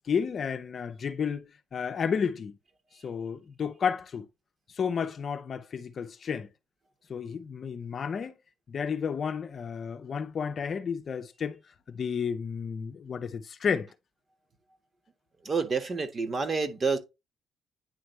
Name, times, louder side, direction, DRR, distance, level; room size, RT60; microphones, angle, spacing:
voice 1, 0.0-2.5 3.0-4.3 4.7-6.5 7.1-8.3 8.7-11.6 11.9-13.9, left 6 dB, 50° left, 0.7 m, -32 dB
voice 2, 15.4-17.0, right 4 dB, 35° right, 1.5 m, -28 dB
9.7 x 3.3 x 3.2 m
cardioid pair, 90°, 0 cm